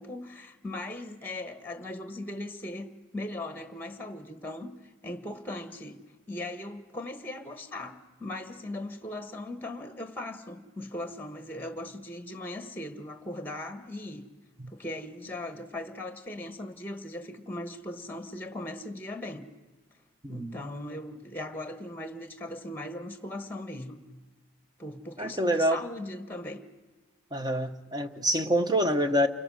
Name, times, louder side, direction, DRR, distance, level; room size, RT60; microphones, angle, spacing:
voice 1, 0.0-4.7 5.0-6.0 6.3-14.3 14.7-19.5 20.3-24.0 24.8-26.6, left 1 dB, 10° left, 1.3 m, -39 dB
voice 2, 20.2-20.6 25.2-25.8 27.3-29.3, equal, 20° right, 1.0 m, -26 dB
29.5 x 23.0 x 6.3 m
head